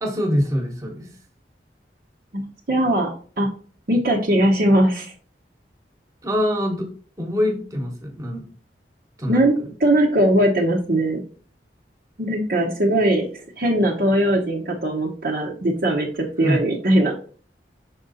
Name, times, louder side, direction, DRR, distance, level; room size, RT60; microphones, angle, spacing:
voice 1, 0.0-1.1 6.2-6.9 7.2-8.4 9.2-9.7 16.4-16.6, equal, 20° right, 2 dB, 1.3 m, -24 dB
voice 2, 2.3-3.1 3.4-3.5 3.9-5.1 9.3-9.5 9.8-11.2 12.2-13.3 13.6-16.1 16.4-17.3, right 1 dB, 55° right, -3 dB, 0.9 m, -20 dB
6.0 x 3.8 x 4.1 m, 0.43 s
head